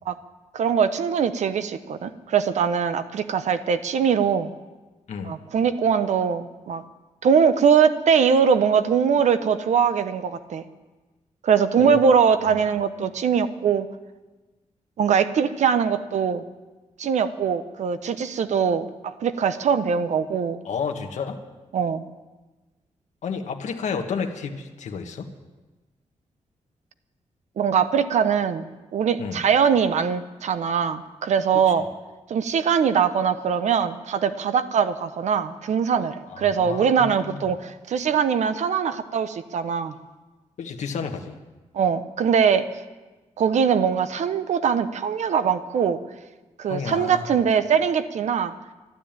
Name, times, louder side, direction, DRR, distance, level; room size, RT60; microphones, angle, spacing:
voice 1, 0.5-4.5 5.2-6.8 7.2-10.6 11.4-13.9 15.0-16.4 17.0-20.6 21.7-22.1 27.6-28.6 28.9-31.8 32.3-39.9 41.7-42.6 43.4-46.0 46.6-48.5, right 7 dB, 75° right, 12 dB, 0.9 m, -22 dB
voice 2, 20.6-21.4 23.2-25.3 29.2-29.4 31.7-31.8 36.3-37.4 40.6-41.4 46.7-47.4, left 5 dB, 80° left, 4 dB, 1.4 m, -31 dB
12.5 x 12.5 x 8.9 m, 1.2 s
wide cardioid pair, 155°, 12 cm